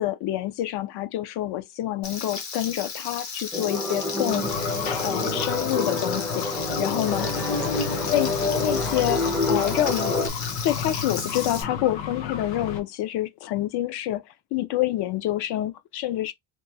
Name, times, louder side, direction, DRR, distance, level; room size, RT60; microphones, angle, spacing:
voice 1, 0.0-4.7 5.0-7.3 8.0-8.3 8.6-10.3 10.6-14.2 14.5-16.3, left 14 dB, 65° left, 0.5 m, -27 dB
Frying (food), 2.0-11.6, left 5 dB, 45° left, 0.8 m, -35 dB
sound 1, 3.5-10.3, left 2 dB, 5° left, 0.4 m, -28 dB
sound 2, 4.3-12.8, left 6 dB, 85° left, 0.9 m, -32 dB
3.0 x 2.2 x 2.6 m
cardioid pair, 175°, 43 cm